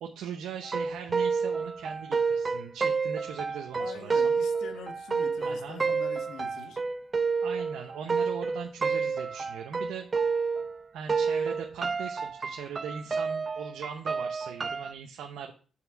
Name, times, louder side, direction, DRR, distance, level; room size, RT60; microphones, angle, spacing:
voice 1, 0.0-4.3 5.4-5.8 7.4-10.1 10.9-15.5, right 7 dB, 80° right, 0.8 m, -40 dB
sound 1, 0.6-10.8 11.1-14.9, right 5 dB, 30° right, 0.5 m, -29 dB
voice 2, 3.8-6.8, left 6 dB, 75° left, 1.1 m, -44 dB
7.6 x 3.4 x 6.0 m
cardioid pair, 90°, 0 cm